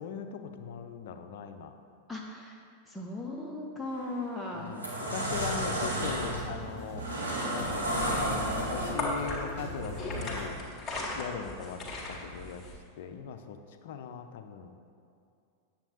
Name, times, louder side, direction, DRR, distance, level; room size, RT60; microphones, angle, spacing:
voice 1, 0.0-1.7 4.5-7.1 7.5-8.1 8.7-10.6 11.1-11.8 12.1-12.6 13.0-14.8, left 7 dB, 55° left, 8 dB, 0.5 m, -40 dB
voice 2, 2.1-4.8, left 2 dB, ahead, -3 dB, 0.8 m, -38 dB
sound 1, 3.9-4.1 4.6-9.3, right 1 dB, 80° right, 1.5 m, -32 dB
sound 2, 5.2-10.4, equal, 45° right, 2.0 m, -41 dB
sound 3, 7.6-12.7, left 2 dB, 15° left, 1.6 m, -38 dB
8.8 x 7.3 x 2.9 m, 2.5 s
figure-of-eight pair, 90°, 0 cm